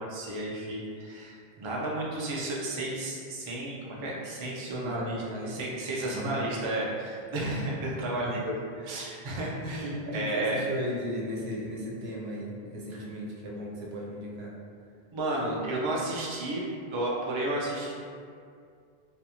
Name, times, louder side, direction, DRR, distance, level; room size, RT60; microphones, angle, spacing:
voice 1, 0.0-5.2 5.5-8.5 8.8-10.6 15.1-16.6 16.9-17.9, right 1 dB, 50° right, -4 dB, 0.3 m, -32 dB
voice 2, 4.8-5.6 6.1-6.5 7.4-7.7 8.2-8.4 9.8-14.5, equal, 85° right, -3 dB, 0.9 m, -36 dB
2.4 x 2.3 x 2.8 m, 2.3 s
omnidirectional pair, 1.0 m